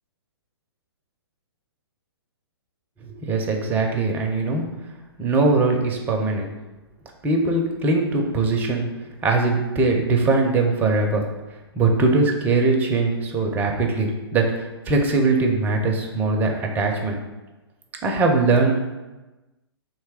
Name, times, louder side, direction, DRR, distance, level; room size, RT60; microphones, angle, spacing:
voice 1, 3.2-4.7 5.2-6.5 7.2-8.9 9.2-11.2 11.8-17.2 18.0-18.8, right 3 dB, 10° right, 2 dB, 0.5 m, -21 dB
3.3 x 3.1 x 4.8 m, 1.1 s
figure-of-eight pair, 120°, 14 cm